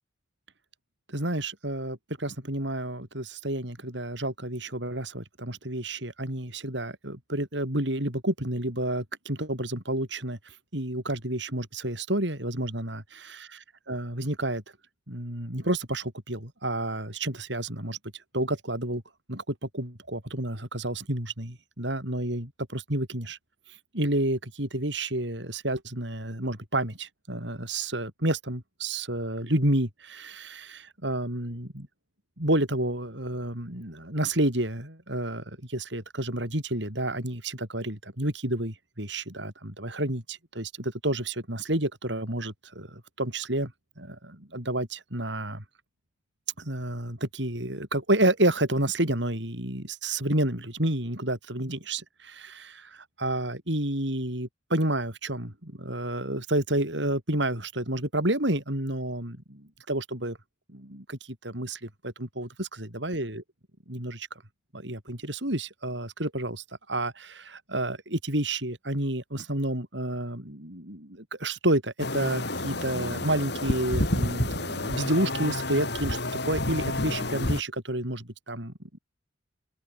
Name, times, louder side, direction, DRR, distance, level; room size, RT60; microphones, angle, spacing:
voice 1, 1.1-13.5 13.9-14.6 15.1-18.0 18.3-19.0 19.3-23.4 23.9-31.9 32.4-43.7 44.0-45.6 46.6-59.6 59.9-60.4 60.7-63.4 63.9-64.3 64.7-78.7, right 1 dB, 65° right, 7.2 m, -30 dB
sound 1, 72.0-77.6, left 1 dB, 60° left, 5.6 m, -29 dB
head